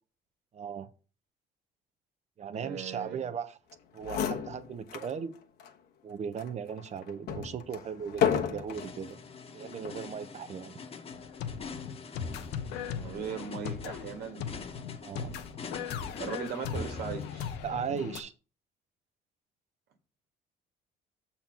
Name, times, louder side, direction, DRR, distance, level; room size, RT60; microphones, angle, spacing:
voice 1, 0.5-0.9 2.4-3.6 3.9-5.3 6.0-9.2 9.5-10.8 15.0-15.3 17.6-18.3, right 7 dB, 40° right, 0.9 m, -37 dB
voice 2, 2.5-3.3 12.8-14.5 16.2-17.5, right 7 dB, 70° right, 1.8 m, -38 dB
sound 1, 3.7-3.8 4.0-5.1 5.6-5.7 6.4-9.0 9.7-10.1, left 8 dB, 70° left, 1.3 m, -32 dB
sound 2, 8.7-17.6, left 4 dB, 35° left, 1.2 m, -44 dB
sound 3, 11.1-18.2, left 8 dB, 90° left, 1.0 m, -39 dB
7.2 x 4.4 x 5.9 m
cardioid pair, 110°, 17 cm